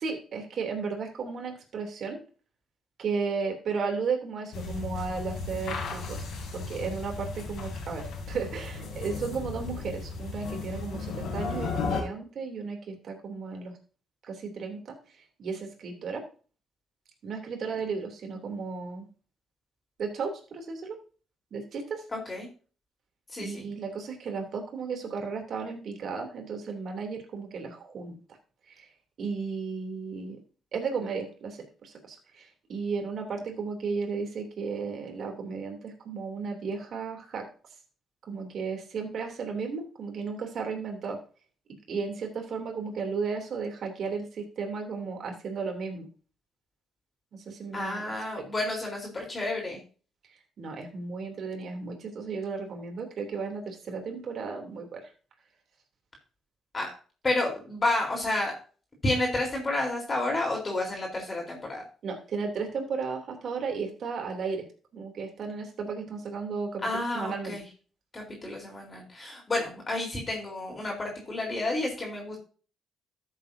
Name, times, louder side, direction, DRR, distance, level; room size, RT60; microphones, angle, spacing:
voice 1, 0.0-2.2 3.0-6.2 6.5-13.8 14.3-16.3 17.2-19.1 20.0-20.9 21.5-22.0 23.4-28.2 28.7-28.9 29.2-30.4 30.7-37.5 38.3-41.2 41.9-46.1 47.3-48.0 48.4-48.5 50.6-55.1 62.0-64.6 64.9-67.5, right 5 dB, 60° right, 3 dB, 3.1 m, -34 dB
sound 1, 4.5-12.0, left 4 dB, 75° left, 3.1 m, -35 dB
voice 2, 22.1-22.5 23.3-23.7 47.7-49.8 56.7-57.0 57.2-58.6 59.0-61.8 66.8-67.6 68.1-72.4, left 2 dB, 30° left, -1 dB, 4.0 m, -30 dB
13.5 x 7.5 x 2.8 m, 0.38 s
cardioid pair, 90°, 0 cm